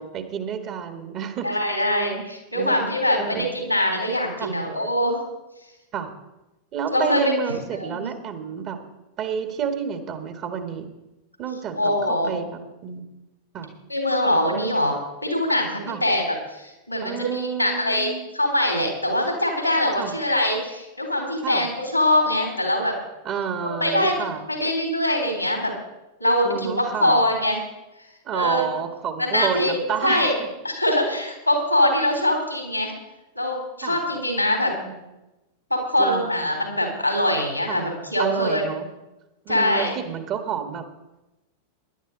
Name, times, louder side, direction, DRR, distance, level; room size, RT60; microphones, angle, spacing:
voice 1, 0.0-1.6 2.5-3.5 4.4-4.5 5.9-6.1 6.7-8.8 9.2-10.9 11.4-13.1 13.5-13.7 15.9-16.0 17.0-18.2 20.0-20.2 21.4-21.7 23.2-24.6 26.4-27.2 28.3-30.5 33.8-34.0 34.7-35.0 36.0-36.5 37.7-37.9 38.2-38.9 39.5-40.8, right 7 dB, 35° right, 7 dB, 1.7 m, -30 dB
voice 2, 1.4-5.2 6.9-7.3 7.7-8.1 11.8-12.3 13.9-15.0 15.2-22.9 23.6-24.2 24.5-25.7 26.2-27.6 28.3-28.7 29.2-30.3 30.6-32.9 33.4-34.7 35.7-38.6 39.5-39.9, left 1 dB, 90° left, 2 dB, 3.4 m, -23 dB
17.5 x 11.0 x 3.9 m, 1.0 s
figure-of-eight pair, 90°, 0 cm